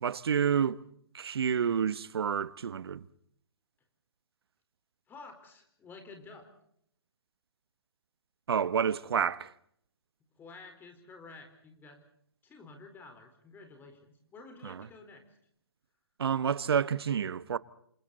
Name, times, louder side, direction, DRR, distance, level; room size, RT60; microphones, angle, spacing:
voice 1, 0.0-0.8 1.1-3.0 8.5-9.5 14.6-14.8 16.2-17.6, right 7 dB, 65° right, 1.1 m, -29 dB
voice 2, 5.1-6.5 10.4-12.0 12.4-15.3, left 3 dB, 15° left, 4.3 m, -51 dB
29.0 x 26.5 x 4.1 m
figure-of-eight pair, 130°, 14 cm